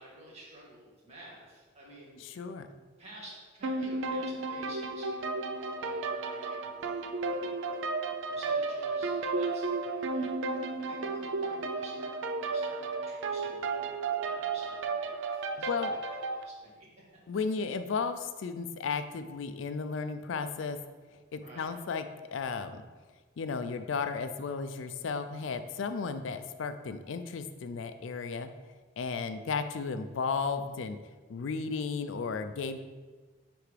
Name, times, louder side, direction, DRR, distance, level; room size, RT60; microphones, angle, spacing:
voice 1, 0.0-2.2 3.0-17.0 21.4-21.7, right 1 dB, 35° right, -5 dB, 1.9 m, -52 dB
voice 2, 2.2-2.7 15.7-15.9 17.3-20.8 21.3-22.1 22.3-22.8 23.4-28.5 29.0-31.0 31.3-32.8, left 5 dB, 75° left, 9 dB, 0.4 m, -34 dB
sound 1, 3.6-16.4, right 3 dB, 70° right, 0.4 m, -33 dB
9.7 x 3.4 x 3.3 m, 1.3 s
head